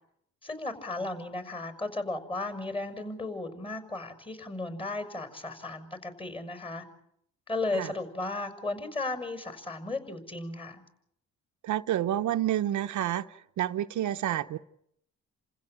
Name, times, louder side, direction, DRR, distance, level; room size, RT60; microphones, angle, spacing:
voice 1, 0.4-6.8 7.5-10.8, left 2 dB, 15° left, 6.2 m, -35 dB
voice 2, 11.6-13.3 13.6-14.6, right 12 dB, 75° right, 1.0 m, -29 dB
29.5 x 16.0 x 9.0 m
cardioid pair, 90°, 30 cm